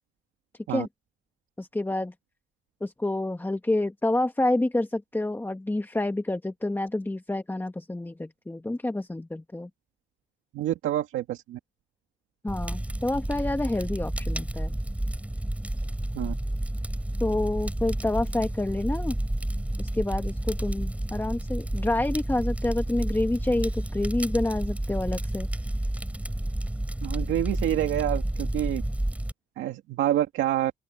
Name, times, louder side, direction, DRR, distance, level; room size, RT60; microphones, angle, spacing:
voice 1, 1.6-2.1 2.8-9.7 12.4-14.7 17.2-19.2 19.8-25.5, left 2 dB, 10° left, 1.6 m, -28 dB
voice 2, 10.5-11.6 16.1-16.3 27.0-28.8 29.6-30.7, right 13 dB, 85° right, 2.0 m, -27 dB
Fire, 12.5-29.3, right 1 dB, 5° right, 3.6 m, -30 dB
open air
cardioid pair, 90°, 20 cm